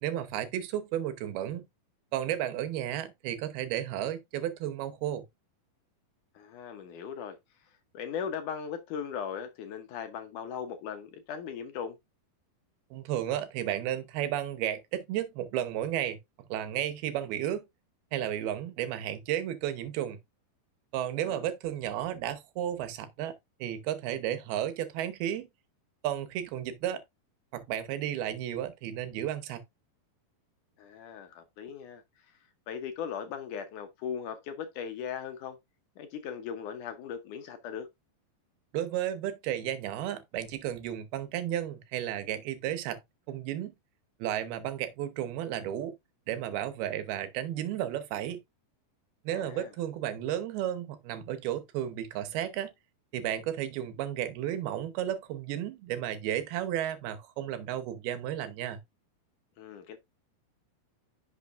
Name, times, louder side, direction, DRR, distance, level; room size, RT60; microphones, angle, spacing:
voice 1, 0.0-1.7 2.1-5.2 12.9-16.2 16.5-17.6 18.1-20.2 20.9-23.4 23.6-25.5 26.0-27.0 27.5-29.6 38.7-43.0 43.3-43.7 44.2-45.9 46.3-48.4 49.2-52.7 53.1-58.8, right 11 dB, 90° right, 3.0 m, -33 dB
voice 2, 6.4-7.4 7.9-12.0 21.2-21.5 30.8-32.3 32.7-35.6 36.0-37.9 49.3-49.7 59.6-60.0, left 7 dB, 70° left, 2.2 m, -38 dB
10.5 x 6.3 x 2.5 m
omnidirectional pair, 4.3 m